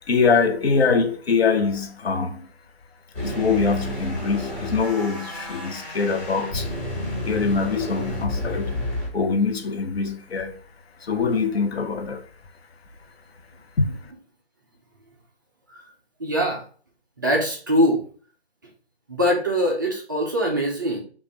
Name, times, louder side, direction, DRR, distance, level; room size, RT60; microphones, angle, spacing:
voice 1, 0.1-2.5 3.2-6.7 7.2-8.7 9.1-10.5 11.0-12.2 13.8-13.9, left 5 dB, 70° left, 0.8 m, -23 dB
sound 1, 3.1-9.1, left 1 dB, 15° left, 1.9 m, -30 dB
voice 2, 16.2-16.6 17.2-18.0 19.1-21.0, equal, 20° right, 0.4 m, -22 dB
5.1 x 2.4 x 3.2 m
figure-of-eight pair, 150°, 32 cm